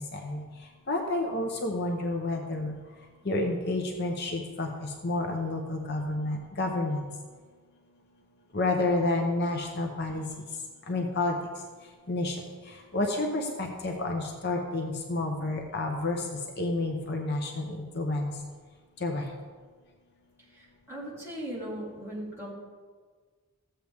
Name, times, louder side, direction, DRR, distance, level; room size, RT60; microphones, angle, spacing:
voice 1, 0.9-2.7 3.3-7.1 8.5-10.2 10.9-11.4 12.1-12.4 12.9-16.2 16.6-18.3 19.0-19.2, left 2 dB, 45° left, 2 dB, 0.9 m, -29 dB
voice 2, 20.4-22.5, right 1 dB, 10° right, -7 dB, 3.1 m, -39 dB
15.0 x 7.9 x 3.5 m, 1.5 s
head